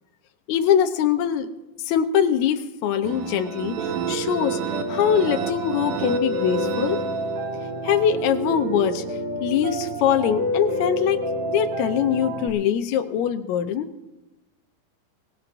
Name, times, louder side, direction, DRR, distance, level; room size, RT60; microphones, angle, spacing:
voice 1, 0.5-1.5 1.9-4.6 4.9-7.0 7.8-9.0 9.4-11.2 11.5-13.9, left 9 dB, 75° left, 7 dB, 1.7 m, -22 dB
sound 1, 3.0-7.8, right 10 dB, 75° right, 2.0 m, -33 dB
Piano, 3.8-12.5, equal, 45° right, 1.4 m, -28 dB
22.5 x 19.0 x 2.6 m, 0.98 s
omnidirectional pair, 4.3 m